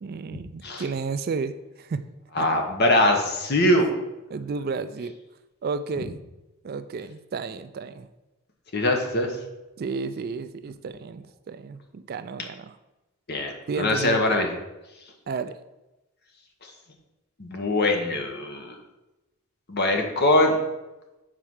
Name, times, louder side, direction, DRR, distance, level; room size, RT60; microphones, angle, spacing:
voice 1, 0.0-2.0 2.4-2.5 4.3-5.1 5.6-6.2 6.6-8.1 9.8-12.8 13.7-14.4 15.3-15.6, right 4 dB, 45° right, 12 dB, 0.3 m, -32 dB
voice 2, 2.3-3.9 8.7-9.4 13.3-14.5 16.6-16.7 17.4-18.7 19.7-20.6, left 1 dB, 45° left, 3 dB, 1.2 m, -22 dB
7.4 x 4.5 x 6.3 m, 1.0 s
head